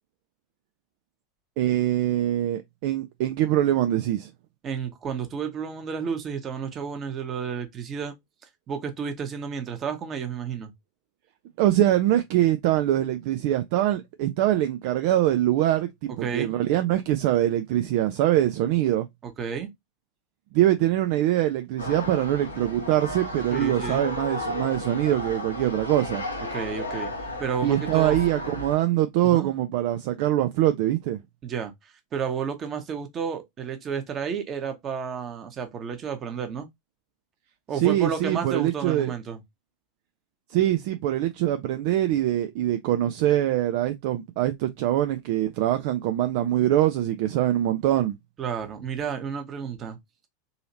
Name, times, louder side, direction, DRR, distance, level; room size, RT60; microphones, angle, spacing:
voice 1, 1.6-4.3 11.6-19.1 20.5-26.2 27.6-31.2 37.8-39.1 40.5-48.2, right 13 dB, 50° right, 0.3 m, -23 dB
voice 2, 4.6-8.1 8.7-10.7 16.2-16.5 19.2-19.7 23.5-24.0 26.5-27.1 27.4-28.1 29.2-29.5 31.4-36.7 37.7-39.4 48.4-50.0, right 6 dB, 30° right, 1.1 m, -31 dB
sound 1, 21.8-28.8, left 1 dB, 85° left, 0.9 m, -33 dB
3.9 x 2.8 x 2.7 m
figure-of-eight pair, 85°, 0 cm